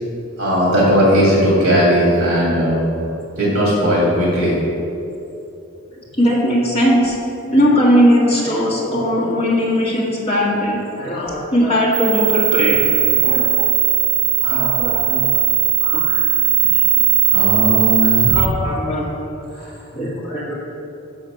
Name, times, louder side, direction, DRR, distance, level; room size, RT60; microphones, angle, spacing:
voice 1, 0.4-2.9 3.4-4.5 17.3-18.4 19.6-19.7, equal, 50° right, -5 dB, 1.9 m, -16 dB
voice 2, 5.9-7.2 7.5-12.8 13.1-13.6 14.4-15.2 15.8-16.2 18.0-19.1 19.9-20.5, equal, 25° left, -5 dB, 1.6 m, -19 dB
sound 1, 11.9-18.5, right 11 dB, 80° right, 0.7 m, -17 dB
6.4 x 5.8 x 6.3 m, 2.8 s
head